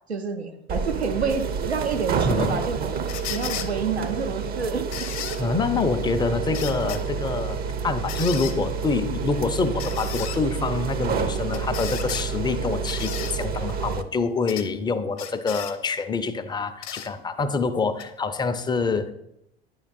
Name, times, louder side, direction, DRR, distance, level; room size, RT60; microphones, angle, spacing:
voice 1, 0.1-2.8 3.3-4.9, right 5 dB, 85° right, 6 dB, 0.6 m, -28 dB
sound 1, 0.7-14.0, right 6 dB, 30° right, 0.6 m, -29 dB
voice 2, 2.2-2.6 5.4-19.1, left 4 dB, 15° left, 9 dB, 0.5 m, -26 dB
sound 2, 3.1-3.7 4.9-5.4 6.5-7.0 8.1-8.6 9.8-10.4 11.5-12.3 12.9-13.3 14.5-14.7 15.2-15.7 16.8-17.1 18.0-18.1, left 10 dB, 45° left, 0.9 m, -34 dB
9.7 x 3.8 x 4.1 m, 0.80 s
figure-of-eight pair, 70°, 31 cm